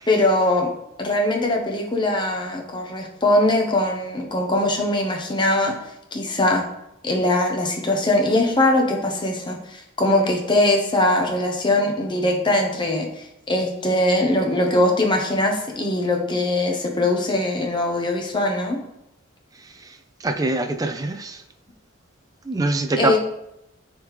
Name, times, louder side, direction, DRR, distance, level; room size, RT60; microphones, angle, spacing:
voice 1, 0.1-0.7 1.0-5.7 6.1-6.6 7.0-18.8 23.0-23.2, left 1 dB, 20° left, 1 dB, 0.9 m, -21 dB
voice 2, 20.2-21.4 22.5-23.2, right 2 dB, 15° right, 6 dB, 0.4 m, -23 dB
9.3 x 3.6 x 3.2 m, 0.83 s
head